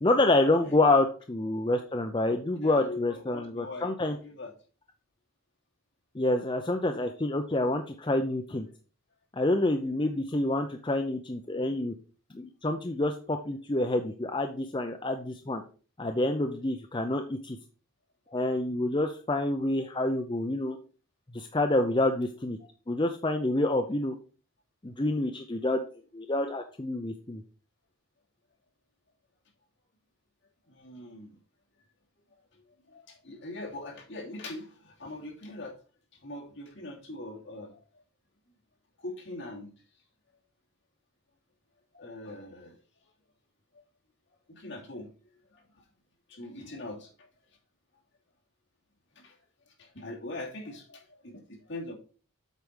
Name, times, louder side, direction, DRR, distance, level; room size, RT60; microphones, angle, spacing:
voice 1, 0.0-4.2 6.1-8.7 9.3-11.9 12.3-15.6 16.0-17.6 18.3-20.8 21.3-22.6 22.9-24.2 24.8-25.8 26.1-27.4, left 2 dB, 20° left, 4 dB, 0.5 m, -27 dB
voice 2, 0.6-0.9 2.5-4.5 18.3-18.4 22.6-22.7 30.7-31.4 32.9-35.8 36.2-37.8 39.0-39.7 41.9-42.8 44.5-45.1 45.5-45.6 46.3-47.3 49.2-49.4 49.8-51.9, left 2 dB, 55° left, -3 dB, 2.9 m, -42 dB
8.2 x 4.7 x 5.5 m, 0.38 s
head